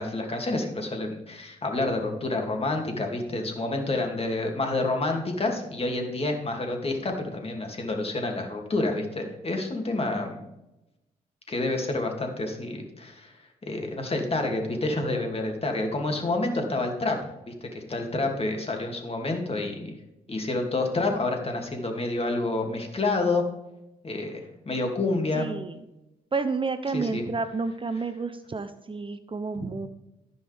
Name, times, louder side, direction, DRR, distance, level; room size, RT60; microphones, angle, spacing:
voice 1, 0.0-10.4 11.5-13.3 13.6-17.2 17.5-19.9 20.3-23.4 24.0-25.5 26.9-27.2 29.6-29.7, left 2 dB, 35° left, 3 dB, 2.6 m, -28 dB
voice 2, 25.3-25.8 26.3-29.9, right 4 dB, 30° right, 10 dB, 0.7 m, -30 dB
15.0 x 5.5 x 3.5 m, 0.91 s
supercardioid pair, 55°, 17 cm